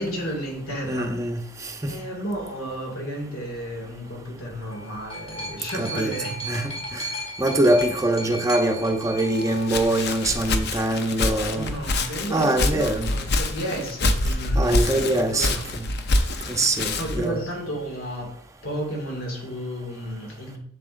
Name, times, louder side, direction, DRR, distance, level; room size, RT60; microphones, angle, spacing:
voice 1, 0.0-1.1 1.9-7.0 7.9-8.0 8.2-8.3 11.5-15.6 17.0-18.3 18.6-20.6, equal, 80° left, 2.2 m, -32 dB
voice 2, 0.8-1.7 5.7-6.1 6.4-7.0 7.4-11.7 12.3-13.2 14.5-15.9 16.5-17.4, right 1 dB, 15° right, 0.7 m, -24 dB
sound 1, 4.5-10.4 11.3-11.4, equal, 30° left, 1.4 m, -36 dB
Walk footsteps, 9.3-17.3, left 2 dB, 50° left, 0.6 m, -26 dB
7.4 x 6.8 x 2.6 m
head